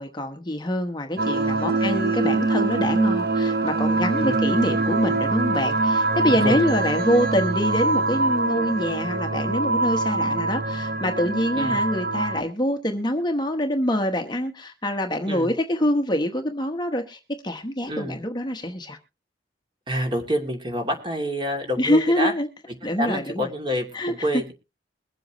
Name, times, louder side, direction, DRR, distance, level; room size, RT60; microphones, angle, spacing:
voice 1, 0.0-19.0 21.8-22.5 22.8-23.5 23.9-24.4, equal, 25° left, 1.1 m, -25 dB
sound 1, 1.2-12.4, right 3 dB, 60° right, 1.4 m, -24 dB
voice 2, 6.2-6.6 11.5-11.8 15.3-15.5 17.9-18.2 19.9-22.3 23.0-24.5, equal, 30° right, 2.8 m, -27 dB
22.5 x 7.8 x 3.1 m
head